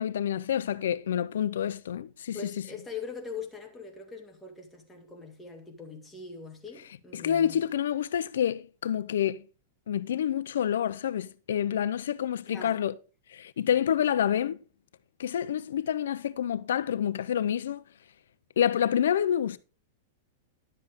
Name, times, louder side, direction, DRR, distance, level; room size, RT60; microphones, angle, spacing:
voice 1, 0.0-2.4 7.1-9.4 9.9-12.9 13.3-14.6 15.2-17.8 18.6-19.6, left 9 dB, 85° left, 0.5 m, -28 dB
voice 2, 2.3-7.7 12.5-12.8, left 5 dB, 10° left, 1.9 m, -42 dB
11.0 x 7.6 x 3.6 m
supercardioid pair, 150°, 0 cm